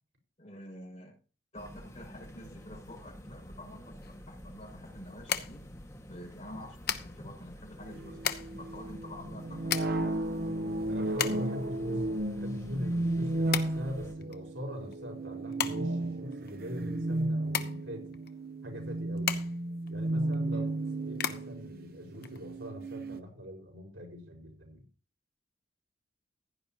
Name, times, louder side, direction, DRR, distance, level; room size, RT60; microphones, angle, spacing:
voice 1, 0.4-1.1 1.5-5.6 6.1-10.2 20.5-20.6, left 1 dB, 35° left, -1 dB, 6.5 m, -48 dB
sound 1, 1.5-14.1, equal, 15° left, 1.9 m, -49 dB
sound 2, 4.0-22.9, left 8 dB, 55° left, 1.0 m, -39 dB
sound 3, 7.9-23.2, right 1 dB, 50° right, 0.9 m, -34 dB
voice 2, 10.9-18.2 18.6-19.5 19.9-24.8, equal, 85° right, 2 dB, 5.5 m, -42 dB
15.5 x 11.0 x 3.0 m, 0.36 s
head